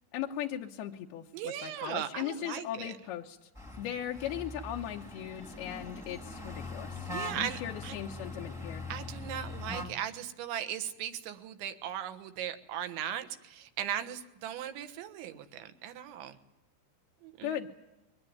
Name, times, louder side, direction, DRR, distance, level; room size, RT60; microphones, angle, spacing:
voice 1, 0.1-3.4 3.8-8.8 17.4-17.7, left 11 dB, 75° left, 0 dB, 2.5 m, -38 dB
voice 2, 1.3-2.9 7.1-8.0 8.9-16.4 17.2-17.5, right 10 dB, 75° right, 9 dB, 3.5 m, -38 dB
sound 1, 3.5-9.9, left 2 dB, ahead, 1.2 m, -41 dB
23.0 x 18.5 x 9.5 m, 0.97 s
omnidirectional pair, 5.5 m